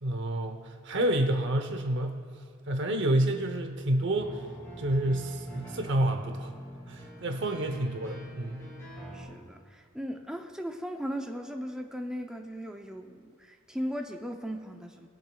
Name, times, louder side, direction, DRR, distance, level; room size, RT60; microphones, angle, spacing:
voice 1, 0.0-2.2 2.7-4.4 4.8-6.5 6.9-8.6, right 1 dB, 60° right, 5 dB, 0.8 m, -29 dB
sound 1, 4.2-9.3, equal, 15° left, 2.0 m, -45 dB
voice 2, 9.1-15.1, equal, 5° right, 4 dB, 0.5 m, -37 dB
21.0 x 7.5 x 2.3 m, 2.2 s
head